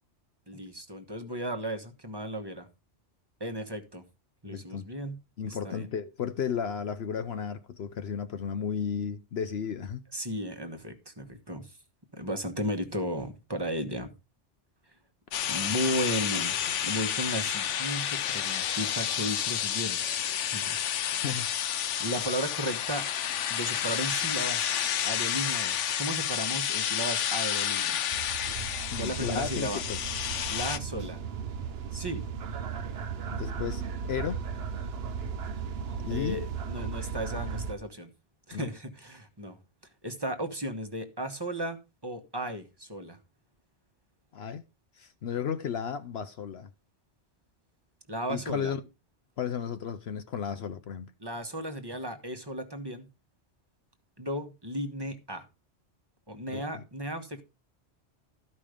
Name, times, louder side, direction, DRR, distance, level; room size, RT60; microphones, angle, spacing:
voice 1, 0.5-2.7 3.4-4.0 4.4-5.2 5.5-5.9 10.1-11.7 12.1-14.1 15.5-16.5 16.8-20.1 20.5-20.8 21.1-21.4 22.0-23.1 23.5-28.1 29.0-29.8 30.5-31.2 31.9-32.2 36.1-38.1 38.5-39.6 40.0-43.2 48.1-48.7 51.2-53.1 54.2-55.4 56.3-57.4, equal, 20° right, 1.3 m, -35 dB
voice 2, 4.4-4.9 5.4-10.0 21.2-21.5 28.9-30.0 33.3-34.4 36.0-36.4 38.5-38.7 44.3-44.6 45.0-46.7 48.3-48.8 49.4-51.1 56.5-56.8, left 7 dB, 65° left, 0.9 m, -34 dB
sound 1, 15.3-30.8, left 10 dB, 85° left, 1.1 m, -30 dB
sound 2, 28.1-37.7, right 6 dB, 60° right, 1.0 m, -36 dB
13.5 x 5.4 x 5.0 m
omnidirectional pair, 1.2 m